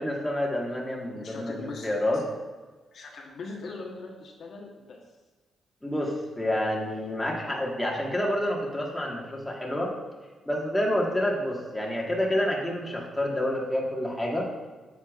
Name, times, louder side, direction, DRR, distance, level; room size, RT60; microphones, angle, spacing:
voice 1, 0.0-2.2 5.8-9.9 10.5-14.5, left 1 dB, 10° left, -2 dB, 1.6 m, -28 dB
voice 2, 1.1-2.2 2.9-5.0, left 3 dB, 65° left, -1 dB, 1.2 m, -41 dB
8.3 x 6.7 x 2.5 m, 1.3 s
cardioid pair, 90°, 0 cm